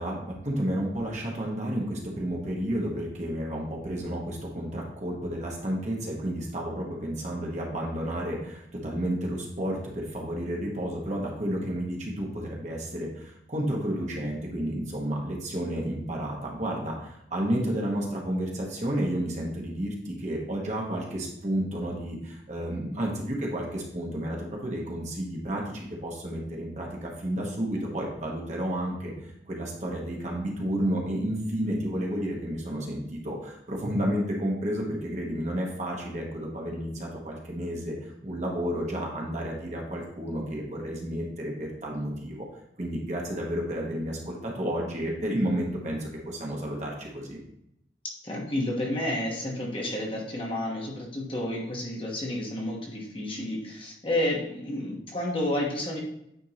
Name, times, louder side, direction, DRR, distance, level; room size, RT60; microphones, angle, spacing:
voice 1, 0.0-24.4 24.6-29.1 29.5-42.4 42.8-47.4, right 1 dB, 40° right, -2 dB, 1.2 m, -31 dB
voice 2, 48.2-56.0, left 1 dB, 30° left, -2 dB, 1.1 m, -30 dB
9.1 x 3.6 x 2.9 m, 0.79 s
head